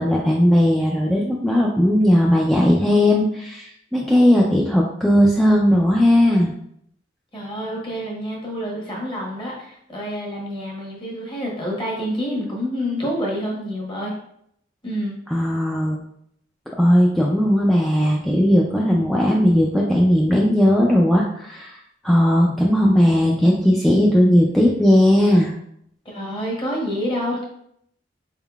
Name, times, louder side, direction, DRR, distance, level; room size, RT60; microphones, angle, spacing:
voice 1, 0.0-6.5 15.3-16.0 16.8-21.8 22.0-25.5, equal, ahead, -3 dB, 0.3 m, -17 dB
voice 2, 7.3-14.1 14.8-15.1 26.0-27.4, equal, 30° left, -2 dB, 1.1 m, -27 dB
4.3 x 3.6 x 2.3 m, 0.71 s
head